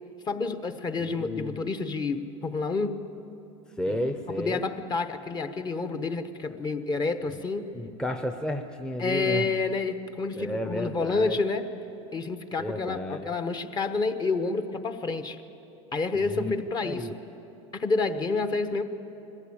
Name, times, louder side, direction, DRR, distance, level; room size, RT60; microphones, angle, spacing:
voice 1, 0.3-3.0 3.9-4.0 4.4-7.7 9.0-11.7 12.1-15.4 15.9-17.1 17.7-18.8, left 3 dB, 25° left, 8 dB, 1.1 m, -29 dB
voice 2, 1.0-1.7 3.8-4.6 7.7-9.5 10.3-11.4 12.6-13.3 16.1-16.5 16.8-17.1, left 1 dB, 5° left, 5 dB, 0.8 m, -32 dB
22.0 x 15.5 x 8.7 m, 3.0 s
supercardioid pair, 120°, 16 cm